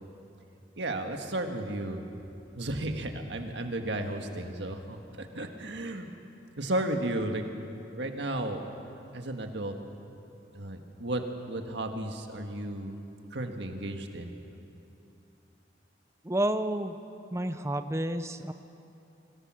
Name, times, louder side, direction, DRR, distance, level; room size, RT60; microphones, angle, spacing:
voice 1, 0.8-2.1 2.5-6.1 6.6-7.4 8.0-8.6 9.1-9.7 10.5-13.0 13.3-14.3, right 1 dB, 75° right, 5 dB, 1.6 m, -33 dB
voice 2, 16.2-17.0 17.3-18.5, right 1 dB, 15° right, 9 dB, 0.6 m, -30 dB
24.5 x 17.0 x 6.2 m, 2.8 s
head